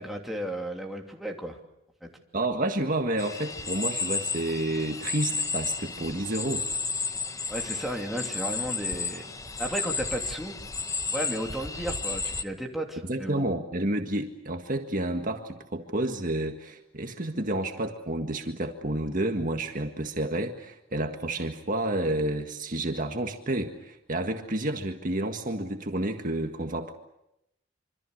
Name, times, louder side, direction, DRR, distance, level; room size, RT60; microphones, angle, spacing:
voice 1, 0.0-1.6 7.5-9.2 9.6-10.6 11.1-13.4, right 1 dB, ahead, 0 dB, 2.9 m, -34 dB
voice 2, 2.3-6.7 13.1-26.9, right 1 dB, 45° right, 4 dB, 1.8 m, -30 dB
sound 1, 3.2-12.4, left 4 dB, 15° left, 0.9 m, -32 dB
26.5 x 25.5 x 6.6 m, 0.83 s
head